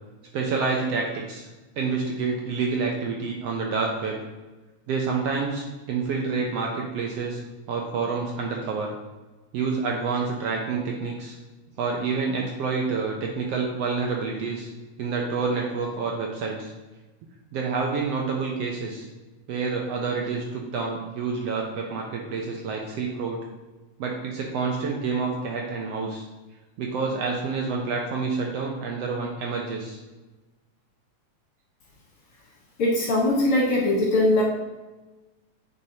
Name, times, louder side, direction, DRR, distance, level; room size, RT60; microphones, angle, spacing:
voice 1, 0.3-1.5 1.8-4.2 4.9-7.4 7.7-8.9 9.5-11.4 11.8-14.7 15.0-16.7 17.5-19.1 19.5-23.4 24.0-26.3 26.8-30.0, right 4 dB, 70° right, 0 dB, 1.6 m, -28 dB
voice 2, 32.8-34.4, left 1 dB, 55° left, -3 dB, 1.9 m, -21 dB
9.6 x 4.8 x 2.8 m, 1.2 s
omnidirectional pair, 3.3 m